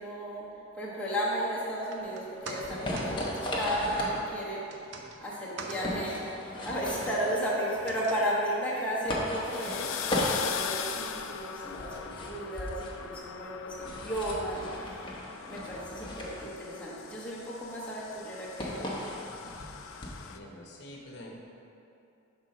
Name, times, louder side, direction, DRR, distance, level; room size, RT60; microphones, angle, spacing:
voice 1, 0.0-15.2 15.5-18.9, equal, 5° left, -8 dB, 1.2 m, -34 dB
sound 1, 1.7-14.1 14.4-14.5, right 3 dB, 60° right, 0.6 m, -49 dB
sound 2, 2.0-20.3, left 1 dB, 25° left, 0.9 m, -36 dB
sound 3, 9.0-20.4, left 8 dB, 90° left, 0.4 m, -40 dB
voice 2, 20.1-21.4, left 1 dB, 60° left, -1 dB, 0.9 m, -47 dB
6.1 x 3.7 x 5.5 m, 2.7 s
head